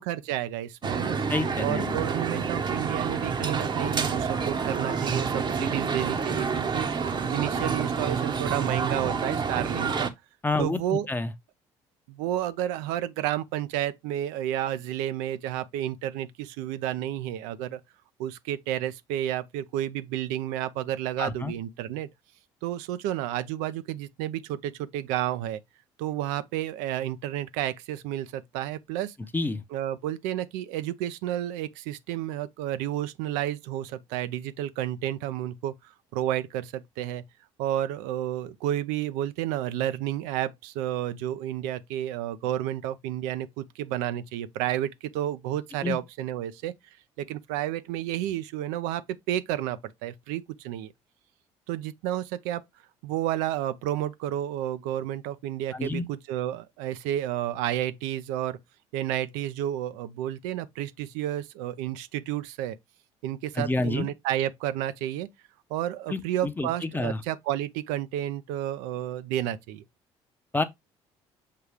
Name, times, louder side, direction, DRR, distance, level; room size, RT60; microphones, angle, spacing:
voice 1, 0.0-1.2 1.6-6.9 7.3-10.1 10.6-11.1 12.1-17.8 18.2-22.1 22.6-25.6 26.0-29.2 29.7-37.2 37.6-46.7 47.2-50.9 51.7-52.6 53.0-58.6 58.9-62.8 63.2-65.3 65.7-69.8, right 12 dB, 85° right, 0.4 m, -31 dB
sound 1, 0.8-10.1, right 5 dB, 40° right, 0.7 m, -28 dB
voice 2, 1.3-2.0 10.4-11.3 21.2-21.5 29.3-29.6 45.8-46.0 55.7-56.1 63.6-64.1 66.1-67.2 70.5-70.6, left 3 dB, 15° left, 0.7 m, -29 dB
6.5 x 2.3 x 3.3 m
supercardioid pair, 65°, 13 cm